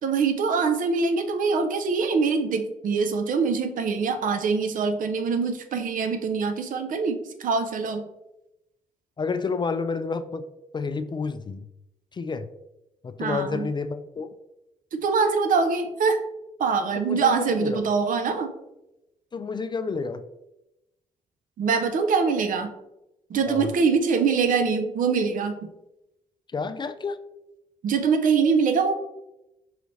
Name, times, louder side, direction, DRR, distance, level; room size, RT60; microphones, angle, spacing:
voice 1, 0.0-8.1 13.2-13.7 14.9-16.2 16.6-18.5 21.6-22.7 23.3-25.6 27.8-28.9, right 5 dB, 60° right, 8 dB, 0.6 m, -24 dB
voice 2, 9.2-10.4 10.7-11.7 12.1-12.5 13.0-14.3 17.0-17.9 19.3-20.2 23.5-23.7 26.5-27.2, left 4 dB, 30° left, 11 dB, 0.4 m, -30 dB
4.8 x 2.7 x 3.1 m, 0.91 s
hypercardioid pair, 50°, 15 cm